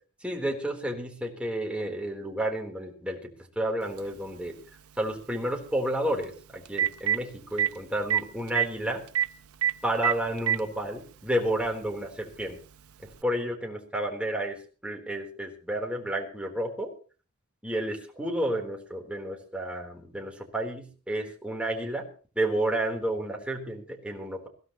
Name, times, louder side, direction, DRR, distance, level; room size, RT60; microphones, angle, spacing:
voice 1, 0.2-3.3 3.6-4.6 5.0-9.0 9.8-12.6 13.2-16.9 17.6-22.1 22.4-24.5, right 1 dB, 5° right, 1 dB, 3.9 m, -31 dB
Telephone, 4.0-4.1 6.2-6.3 6.7-7.2 7.6-7.7 8.1-8.2 8.5-8.7 9.2-9.3 9.6-9.7 10.0-10.6 11.6-11.7 13.1-13.2, right 9 dB, 75° right, 0.8 m, -24 dB
21.5 x 16.5 x 3.1 m, 0.38 s
head